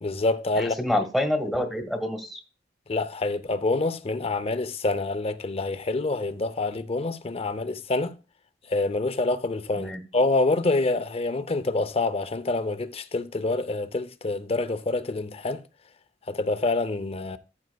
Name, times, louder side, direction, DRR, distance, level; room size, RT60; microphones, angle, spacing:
voice 1, 0.0-1.0 2.9-8.2 8.7-15.6 16.3-17.4, left 2 dB, 35° left, 0.6 m, -27 dB
voice 2, 0.6-2.4 9.7-10.0, left 1 dB, ahead, 1.3 m, -27 dB
14.0 x 7.3 x 2.2 m
head